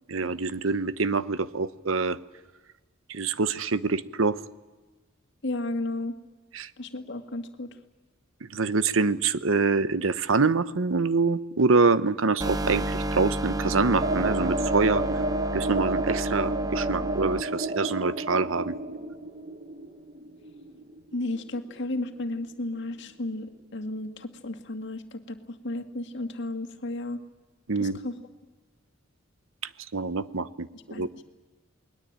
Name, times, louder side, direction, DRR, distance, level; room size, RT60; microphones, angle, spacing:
voice 1, 0.1-2.2 3.1-4.4 6.5-6.7 8.4-15.0 15.5-18.8 27.7-28.0 29.9-31.1, right 4 dB, 75° right, 15 dB, 0.9 m, -25 dB
voice 2, 5.4-6.1 6.8-7.7 21.1-27.2 27.8-28.1 30.7-31.3, left 2 dB, 60° left, 6 dB, 2.1 m, -33 dB
sound 1, 12.4-17.4, right 1 dB, 20° right, 0.9 m, -31 dB
sound 2, 14.0-22.5 22.8-22.9 23.2-23.3, right 1 dB, 35° right, 1.5 m, -32 dB
28.5 x 20.5 x 8.9 m, 1.2 s
head